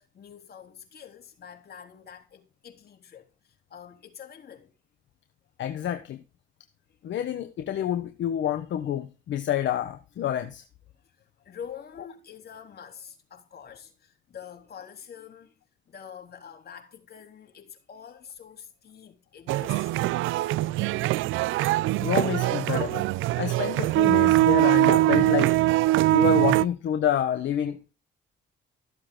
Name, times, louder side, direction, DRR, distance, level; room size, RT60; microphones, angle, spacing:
voice 1, 0.0-4.7 10.9-15.5 15.9-20.1, left 8 dB, 50° left, 3.6 m, -46 dB
voice 2, 5.6-6.2 7.0-10.6 22.0-23.0 23.4-25.6 26.1-27.9, left 10 dB, 70° left, 1.2 m, -28 dB
sound 1, 19.5-26.7, right 16 dB, 90° right, 0.4 m, -22 dB
14.5 x 7.6 x 3.9 m
cardioid pair, 90°, 20 cm